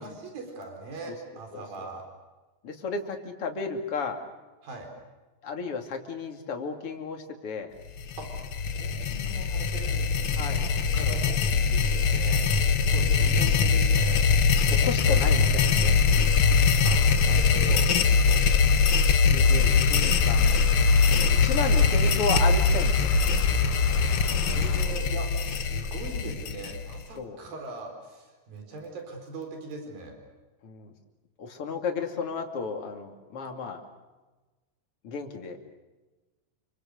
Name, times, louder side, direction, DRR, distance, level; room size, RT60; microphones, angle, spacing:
voice 1, 0.0-2.0 4.6-4.9 8.2-8.3 8.7-14.3 16.8-18.0 21.2-21.9 24.5-30.2, right 3 dB, 80° right, 3 dB, 6.2 m, -40 dB
voice 2, 2.6-4.2 5.4-7.7 10.4-10.6 12.9-13.0 13.3-13.6 14.7-16.3 17.0-17.1 18.2-18.4 19.2-20.6 21.1-23.4 27.2-27.4 30.6-30.9 31.4-33.8 35.0-35.6, left 5 dB, 45° left, 4 dB, 3.1 m, -33 dB
sound 1, 8.0-27.1, left 5 dB, 65° left, 1.3 m, -23 dB
sound 2, 8.5-8.8 9.2-9.4 9.7-9.8 10.1-10.5 11.0-11.7 12.1-12.2 12.4-12.9 13.3-14.2 14.5-24.9, left 1 dB, 90° left, 7.0 m, -30 dB
29.0 x 25.5 x 6.6 m, 1.2 s
omnidirectional pair, 4.0 m